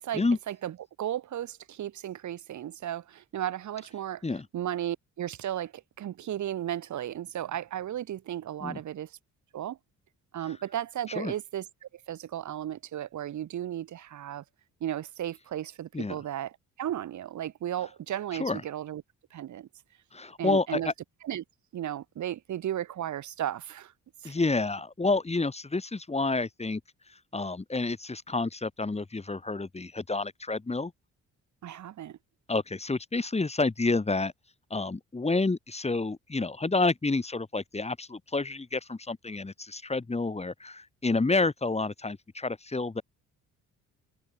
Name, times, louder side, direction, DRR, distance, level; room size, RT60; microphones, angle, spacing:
voice 1, 0.0-4.2 4.5-9.1 9.5-9.8 10.3-14.4 14.8-19.0 19.3-19.7 20.4-20.9 21.2-21.4 21.7-23.9 24.2-24.3 31.6-32.2, right 11 dB, 70° right, 6.0 m, -35 dB
voice 2, 20.1-20.9 24.2-26.8 27.3-30.9 32.5-34.3 34.7-43.0, left 3 dB, 20° left, 5.6 m, -29 dB
cardioid pair, 90°, 30 cm